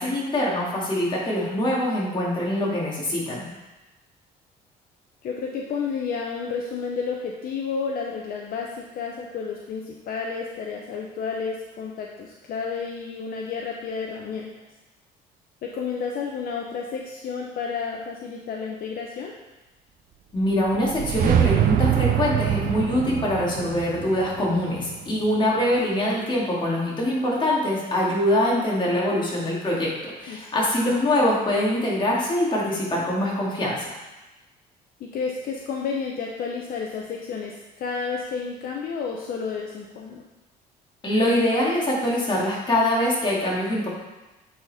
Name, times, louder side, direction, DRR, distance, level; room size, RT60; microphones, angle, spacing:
voice 1, 0.0-3.5 20.3-33.8 41.0-43.9, left 1 dB, 30° left, -4 dB, 2.3 m, -24 dB
voice 2, 5.2-14.5 15.6-19.3 30.3-30.7 35.0-40.2, left 5 dB, 60° left, -1 dB, 0.8 m, -31 dB
sound 1, 20.4-25.6, right 11 dB, 55° right, 0.7 m, -25 dB
8.4 x 4.3 x 4.2 m, 1.1 s
cardioid pair, 110°, 17 cm